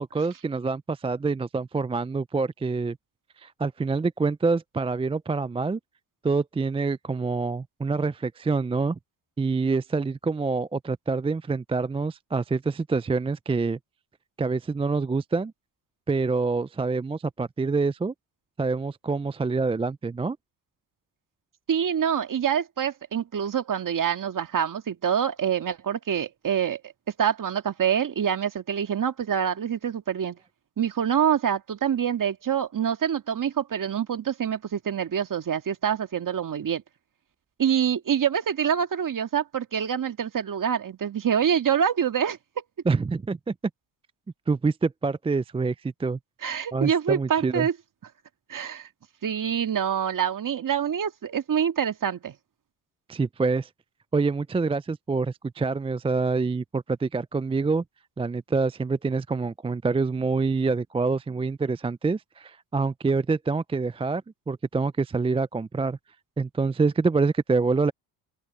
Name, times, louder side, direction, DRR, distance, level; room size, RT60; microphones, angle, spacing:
voice 1, 0.0-3.0 3.4-5.8 6.2-9.0 9.4-13.8 14.4-15.5 16.1-18.1 18.6-20.4 42.9-43.5 44.5-46.2 46.7-47.7 53.1-53.7 54.1-57.8 58.2-66.0 66.4-67.9, right 4 dB, 15° right, 0.5 m, -26 dB
voice 2, 21.7-26.8 27.2-30.4 30.8-36.8 37.6-42.6 46.4-47.7 48.5-48.9 49.2-52.3, right 8 dB, 45° right, 2.1 m, -26 dB
open air
supercardioid pair, 65°, 46 cm